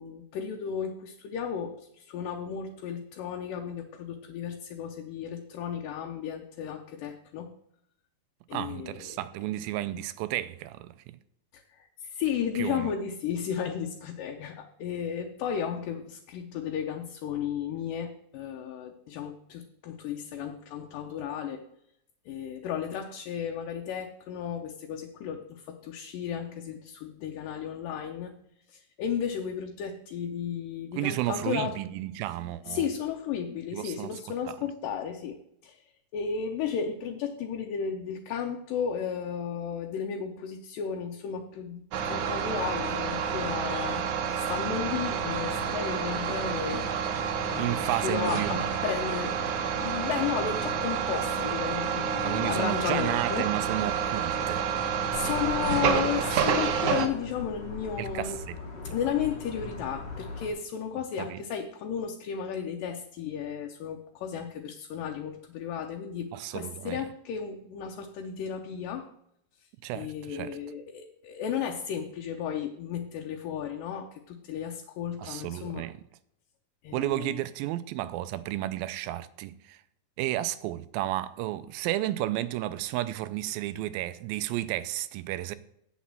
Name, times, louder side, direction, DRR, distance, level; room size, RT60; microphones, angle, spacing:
voice 1, 0.0-7.5 8.5-9.2 11.5-21.6 22.3-28.4 28.7-31.7 32.2-32.3 32.7-35.8 36.1-44.1 44.4-46.9 47.5-49.4 49.8-53.5 55.1-58.4 58.8-69.1 69.9-75.9 76.8-77.4, left 8 dB, 75° left, 2.3 m, -34 dB
voice 2, 8.5-11.2 12.6-12.9 31.0-32.9 33.7-34.1 34.5-34.6 47.6-48.7 52.2-54.6 58.0-58.6 58.9-59.0 61.2-61.4 66.3-67.0 69.8-70.5 75.2-76.0 76.9-79.8 80.2-85.6, right 15 dB, 85° right, 2.4 m, -32 dB
sound 1, 41.9-57.1, right 7 dB, 70° right, 2.1 m, -29 dB
sound 2, 55.1-60.5, left 3 dB, 45° left, 1.6 m, -40 dB
8.2 x 7.1 x 7.5 m
omnidirectional pair, 4.1 m